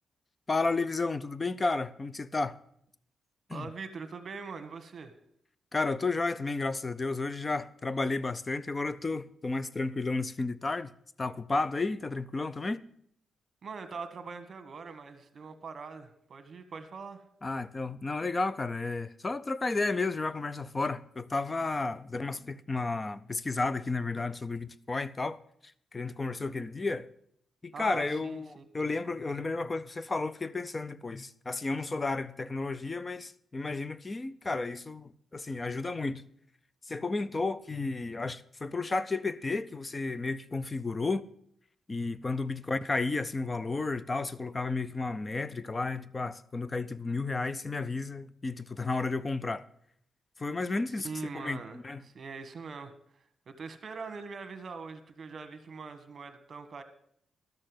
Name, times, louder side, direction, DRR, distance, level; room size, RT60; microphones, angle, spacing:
voice 1, 0.5-2.6 3.5-3.7 5.7-10.9 11.2-12.8 17.4-25.4 25.9-27.1 27.6-36.2 36.9-41.3 41.9-49.6 50.4-51.1 51.3-52.0, left 3 dB, 25° left, 0.5 m, -32 dB
voice 2, 3.5-5.1 13.6-17.3 27.7-28.7 51.0-56.8, right 5 dB, 50° right, 1.3 m, -42 dB
13.0 x 6.5 x 7.8 m
cardioid pair, 120°, 0 cm